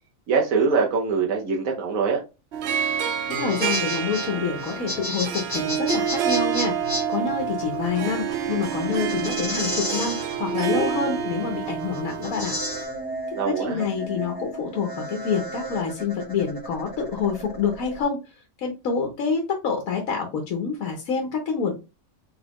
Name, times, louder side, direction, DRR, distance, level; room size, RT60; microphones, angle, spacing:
voice 1, 0.3-2.2 13.3-13.8, right 5 dB, 85° right, 1.3 m, -23 dB
Harp, 2.5-12.8, right 8 dB, 65° right, 0.7 m, -28 dB
voice 2, 3.3-6.7 7.1-12.5 13.4-18.2 18.6-21.7, left 5 dB, 90° left, 1.3 m, -27 dB
sound 1, 3.3-18.0, left 1 dB, 20° left, 0.9 m, -33 dB
sound 2, 6.4-12.3, right 3 dB, 45° right, 1.1 m, -35 dB
4.1 x 3.8 x 2.9 m
omnidirectional pair, 1.4 m